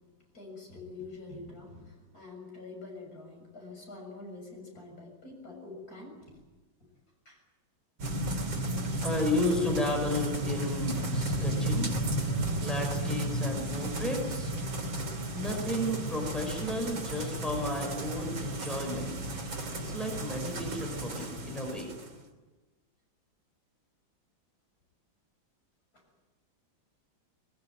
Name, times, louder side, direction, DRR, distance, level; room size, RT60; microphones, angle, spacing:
voice 1, 0.3-6.4 7.3-7.4 25.9-26.0, left 3 dB, 45° left, 0 dB, 7.3 m, -46 dB
sound 1, 8.0-22.1, right 1 dB, 80° right, 3.8 m, -33 dB
voice 2, 9.0-11.9 12.6-14.5 15.3-19.1 19.7-21.9, left 1 dB, ahead, 1 dB, 5.5 m, -33 dB
21.5 x 21.0 x 9.4 m, 1.2 s
omnidirectional pair, 2.1 m